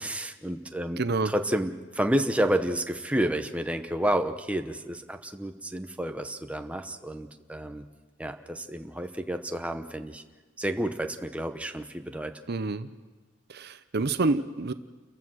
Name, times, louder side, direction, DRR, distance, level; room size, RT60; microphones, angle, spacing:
voice 1, 0.0-1.0 1.2-7.8 8.2-10.2 10.6-12.3, right 1 dB, 5° right, 6 dB, 0.9 m, -30 dB
voice 2, 1.0-1.3 12.5-12.9 13.5-14.7, right 3 dB, 55° right, 12 dB, 0.7 m, -28 dB
30.0 x 15.0 x 6.3 m, 1.3 s
head